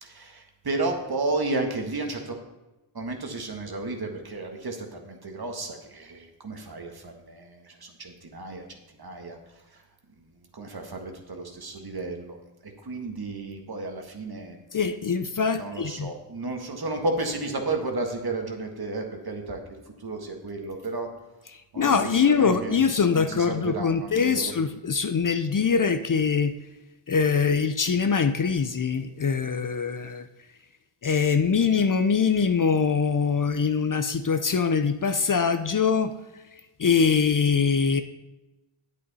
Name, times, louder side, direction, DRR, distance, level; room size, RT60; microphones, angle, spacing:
voice 1, 0.0-2.4 2.9-9.4 10.5-12.4 12.6-14.6 15.5-19.6 20.0-21.1 21.7-22.8 23.1-24.5, right 2 dB, 50° right, 3 dB, 1.7 m, -32 dB
voice 2, 14.7-16.1 21.8-26.6 27.1-30.3 31.0-36.1 36.8-38.0, left 5 dB, 40° left, 9 dB, 0.6 m, -23 dB
8.6 x 8.3 x 4.1 m, 1.0 s
cardioid pair, 50°, 49 cm